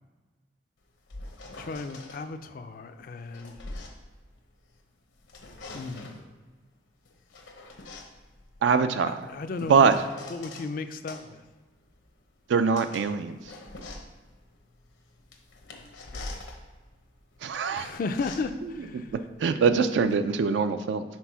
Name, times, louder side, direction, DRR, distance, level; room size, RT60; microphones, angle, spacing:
sound 1, 0.8-2.2 3.0-4.8 5.1-6.3 7.0-10.7 11.1-20.2, left 2 dB, 80° left, 0.9 m, -44 dB
voice 1, 1.6-3.6 5.7-6.1 8.8-9.9 10.3-11.4 16.1-16.4 17.7-19.1, left 3 dB, 45° left, 10 dB, 0.3 m, -35 dB
voice 2, 8.6-9.3 9.7-9.9 12.5-13.4 17.4-17.9 18.9-21.0, right 5 dB, 70° right, 10 dB, 0.3 m, -23 dB
4.6 x 4.2 x 5.6 m, 1.3 s
head